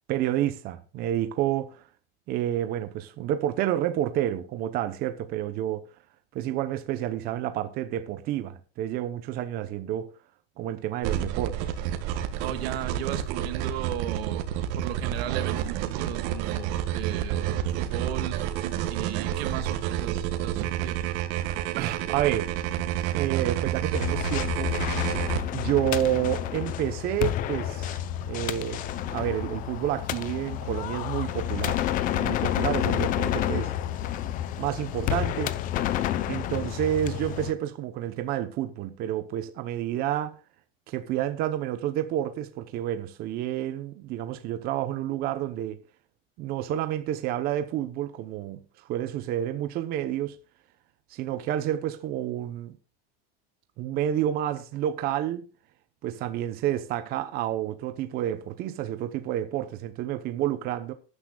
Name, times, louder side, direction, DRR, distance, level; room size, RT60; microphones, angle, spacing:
voice 1, 0.1-1.8 2.3-5.8 6.3-10.1 10.6-11.8 21.4-22.5 23.1-24.7 25.5-28.0 28.3-28.8 29.1-31.8 32.1-33.7 34.6-35.5 36.3-40.3 40.9-45.8 46.4-50.4 51.1-52.8 53.8-55.5 56.0-60.9, right 12 dB, 30° right, 0.8 m, -29 dB
sound 1, 11.0-25.4, right 11 dB, 50° right, 1.8 m, -29 dB
voice 2, 12.4-18.4 18.9-21.1, right 11 dB, 90° right, 2.1 m, -36 dB
sound 2, 23.9-37.5, left 12 dB, 30° left, 0.6 m, -29 dB
18.5 x 9.9 x 2.3 m
supercardioid pair, 175°, 30 cm